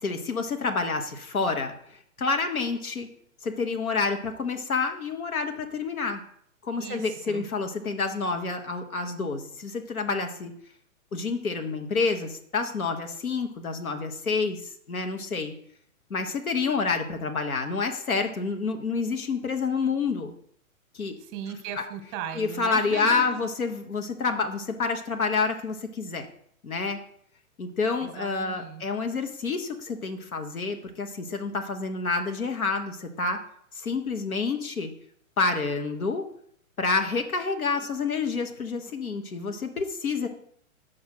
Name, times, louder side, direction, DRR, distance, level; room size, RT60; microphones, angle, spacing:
voice 1, 0.0-1.7 2.2-3.1 3.4-6.2 6.6-10.5 11.1-15.5 16.1-20.3 20.9-21.2 22.4-26.3 26.6-27.0 27.6-33.4 33.7-34.9 35.4-36.3 36.8-40.3, left 4 dB, 85° left, 5 dB, 1.3 m, -28 dB
voice 2, 6.8-7.5 21.2-23.4 28.0-28.8, right 8 dB, 30° right, 8 dB, 1.0 m, -37 dB
6.2 x 4.6 x 6.5 m, 0.67 s
hypercardioid pair, 120°, 42 cm